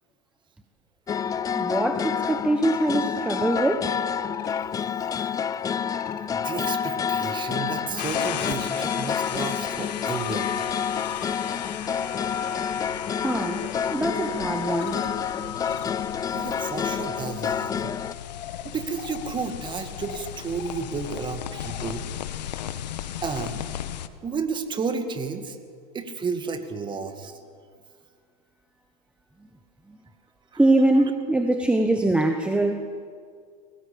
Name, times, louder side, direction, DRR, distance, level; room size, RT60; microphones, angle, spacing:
sound 1, 1.1-18.1, left 7 dB, 15° left, 0.5 m, -28 dB
voice 1, 1.6-3.9 13.2-15.1 29.9-30.0 30.6-32.9, right 2 dB, 5° right, 5 dB, 1.2 m, -23 dB
sound 2, 3.1-8.4 8.7-22.0, left 13 dB, 55° left, 1.6 m, -42 dB
voice 2, 6.3-10.5 16.3-18.0 18.6-22.1 23.2-23.6 24.2-25.6 25.9-27.4 30.5-30.6, right 5 dB, 20° right, 7 dB, 2.2 m, -32 dB
sound 3, 8.0-24.1, left 11 dB, 85° left, 1.2 m, -36 dB
22.0 x 18.0 x 8.7 m, 2.1 s
supercardioid pair, 125°, 21 cm